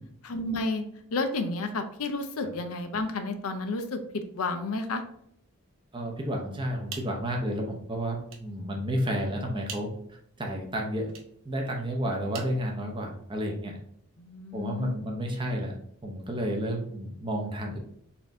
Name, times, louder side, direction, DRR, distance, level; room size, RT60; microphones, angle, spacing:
voice 1, 0.2-5.0 14.2-15.0, left 2 dB, 75° left, 7 dB, 0.5 m, -31 dB
voice 2, 5.9-11.1 11.4-13.8 14.5-15.7 16.0-17.8, equal, 20° right, 0 dB, 0.7 m, -31 dB
sound 1, 6.6-13.4, right 5 dB, 60° right, 0.8 m, -49 dB
4.2 x 2.7 x 3.5 m, 0.70 s
head